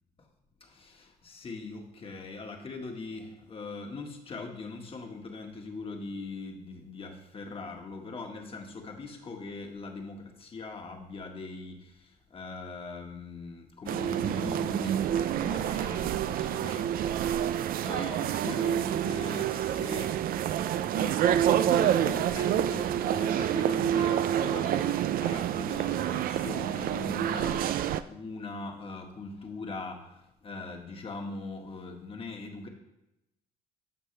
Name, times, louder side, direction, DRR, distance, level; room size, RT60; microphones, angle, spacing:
voice 1, 0.6-16.9 17.8-20.1 20.9-32.7, left 3 dB, 35° left, 3 dB, 1.7 m, -41 dB
sound 1, 13.9-28.0, right 10 dB, 60° right, 0.5 m, -28 dB
13.0 x 7.1 x 3.4 m, 0.90 s
cardioid pair, 110°, 17 cm